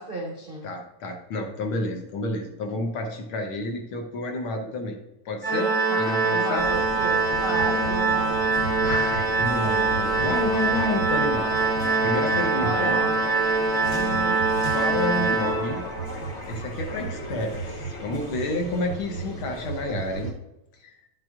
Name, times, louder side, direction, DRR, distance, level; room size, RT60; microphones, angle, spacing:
voice 1, 0.0-0.7 5.9-8.4 12.6-13.2 13.9-14.4, right 2 dB, 85° right, -2 dB, 0.4 m, -33 dB
voice 2, 0.6-5.0 5.2-6.7 8.8-11.5 12.0-13.0 14.7-15.8 16.5-20.3 20.8-21.0, left 2 dB, 70° left, 3 dB, 1.3 m, -30 dB
Organ, 5.4-16.2, right 3 dB, 25° right, 0.4 m, -24 dB
sound 1, 6.6-20.3, right 2 dB, 85° left, 0.6 m, -34 dB
11.0 x 7.6 x 2.4 m, 0.92 s
omnidirectional pair, 3.4 m